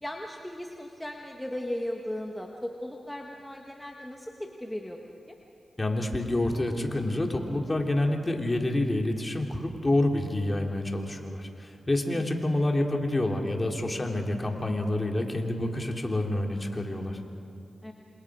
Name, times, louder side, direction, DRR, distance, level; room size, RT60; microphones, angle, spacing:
voice 1, 0.0-5.0 5.3-5.4 12.1-12.3 17.8-17.9, left 1 dB, 10° left, 1 dB, 1.7 m, -37 dB
voice 2, 5.8-17.2, left 1 dB, 25° left, 1 dB, 3.1 m, -28 dB
28.0 x 27.0 x 4.9 m, 2.5 s
cardioid pair, 65°, 0 cm